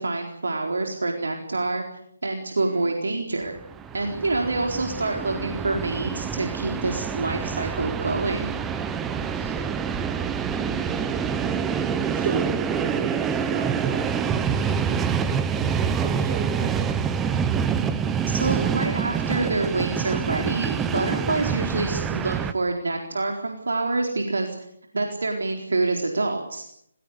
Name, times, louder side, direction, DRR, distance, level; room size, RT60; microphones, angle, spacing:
voice 1, 0.0-1.8 2.2-3.5 3.9-8.5 18.3-24.6 24.9-26.6, right 3 dB, 75° right, 2 dB, 4.2 m, -27 dB
voice 2, 2.6-3.0 9.1-9.8 10.1-10.3 12.1-15.3 15.7-16.8, right 4 dB, 40° right, 2 dB, 5.0 m, -36 dB
Train, 3.6-22.5, right 7 dB, 10° right, 1.0 m, -26 dB
28.5 x 17.0 x 8.2 m, 0.72 s
figure-of-eight pair, 155°, 0 cm